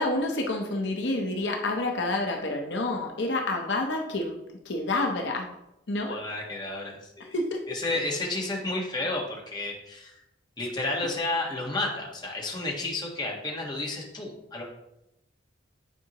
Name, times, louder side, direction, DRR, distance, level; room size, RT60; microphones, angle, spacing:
voice 1, 0.0-4.4 4.7-5.5 5.9-6.2 7.3-7.7, left 2 dB, 70° left, 3 dB, 0.8 m, -28 dB
voice 2, 6.1-7.3 7.7-10.2 10.6-14.6, left 2 dB, 25° left, -2 dB, 1.4 m, -31 dB
9.2 x 4.7 x 3.0 m, 0.86 s
head